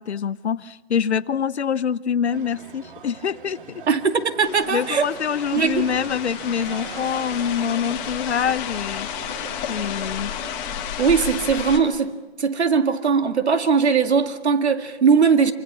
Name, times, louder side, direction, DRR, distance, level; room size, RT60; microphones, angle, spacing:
voice 1, 0.0-3.8 4.7-10.3, left 7 dB, 80° left, 0.8 m, -25 dB
sound 1, 2.3-10.9, right 5 dB, 50° right, 2.0 m, -41 dB
voice 2, 3.9-5.1 5.5-5.9 11.0-15.5, right 5 dB, 75° right, 2.2 m, -20 dB
sound 2, 4.4-11.8, left 9 dB, 10° left, 1.1 m, -32 dB
26.0 x 25.0 x 6.1 m
hypercardioid pair, 165°, 33 cm